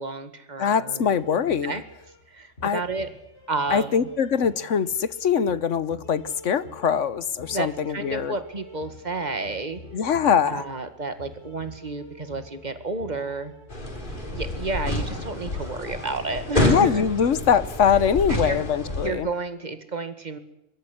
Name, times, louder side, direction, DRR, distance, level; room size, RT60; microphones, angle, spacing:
voice 1, 0.0-1.2 1.6-1.8 2.3-3.1 3.5-4.1 7.5-9.8 10.5-13.5 14.3-17.1 18.3-18.6 19.0-20.4, right 3 dB, 35° right, 10 dB, 2.1 m, -31 dB
voice 2, 0.6-1.7 2.6-2.8 3.7-8.3 9.9-10.6 16.6-19.3, left 7 dB, 75° left, 16 dB, 1.4 m, -23 dB
sound 1, 1.1-19.5, left 2 dB, 60° left, 4.5 m, -47 dB
sound 2, 13.7-19.1, left 1 dB, 40° left, 4.0 m, -28 dB
24.0 x 13.0 x 9.9 m, 0.87 s
omnidirectional pair, 1.3 m